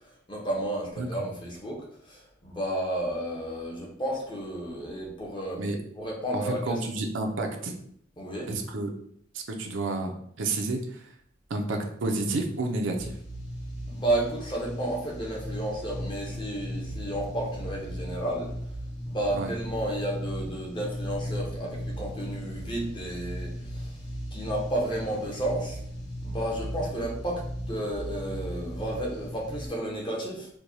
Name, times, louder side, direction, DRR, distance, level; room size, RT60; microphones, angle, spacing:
voice 1, 0.3-5.6 6.0-6.8 8.2-8.5 13.9-18.6 19.1-23.9 24.3-25.8 26.2-30.5, right 1 dB, 25° left, -2 dB, 0.8 m, -32 dB
voice 2, 6.3-7.7 8.5-8.9 9.3-10.1 10.4-11.1 11.5-13.1 19.3-19.5, right 2 dB, 65° right, 3 dB, 0.5 m, -30 dB
sound 1, 13.0-29.7, equal, 60° left, 1.3 m, -37 dB
4.6 x 2.2 x 2.7 m, 0.66 s
head